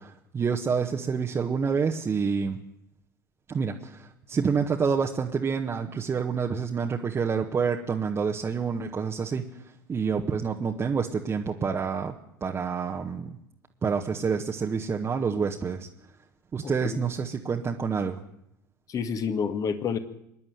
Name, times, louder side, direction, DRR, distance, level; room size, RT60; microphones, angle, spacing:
voice 1, 0.0-2.6 3.5-9.5 9.9-12.1 12.4-13.4 13.8-15.9 16.5-18.2, right 6 dB, 25° right, 1 dB, 1.6 m, -28 dB
voice 2, 16.6-17.0 18.9-20.0, left 6 dB, 35° left, 9 dB, 2.2 m, -29 dB
25.5 x 11.0 x 9.5 m, 0.78 s
figure-of-eight pair, 75°, 11 cm